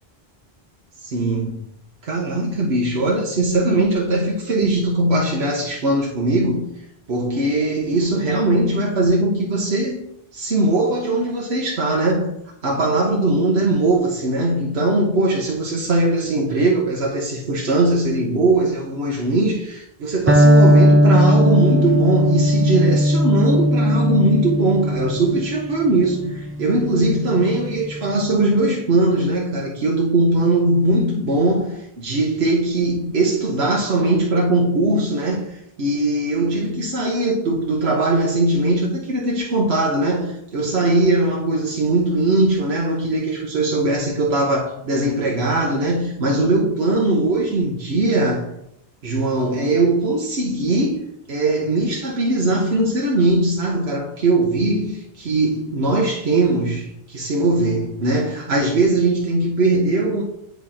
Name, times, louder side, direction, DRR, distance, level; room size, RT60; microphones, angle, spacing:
voice 1, 1.0-1.6 2.0-6.7 7.1-10.0 10.3-12.4 12.6-48.5 49.0-51.0 51.3-60.2, right 2 dB, 90° right, 1.2 m, -20 dB
Electric guitar, 20.3-28.1, equal, 20° right, 0.4 m, -17 dB
9.8 x 3.5 x 4.2 m
omnidirectional pair, 1.0 m